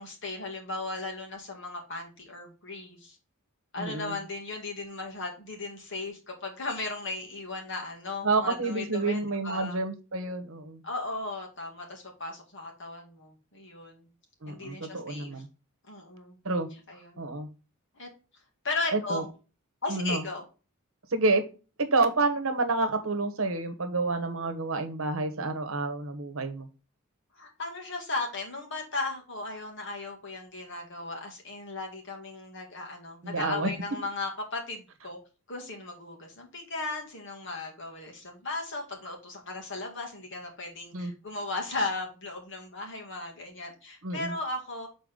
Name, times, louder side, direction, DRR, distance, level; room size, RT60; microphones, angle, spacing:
voice 1, 0.0-3.2 3.7-9.8 10.8-14.1 14.5-15.3 15.9-16.4 16.9-17.2 18.0-18.1 18.6-19.3 19.8-20.4 27.4-35.2 35.5-44.9, left 3 dB, 55° left, 1 dB, 2.2 m, -36 dB
voice 2, 3.8-4.2 8.2-10.8 14.4-15.5 16.4-16.7 17.2-17.5 18.9-19.2 19.9-20.2 21.1-21.4 21.9-26.7 33.2-33.7 40.9-41.1 44.0-44.3, right 3 dB, 70° right, 7 dB, 1.2 m, -29 dB
6.9 x 4.1 x 3.9 m, 0.33 s
head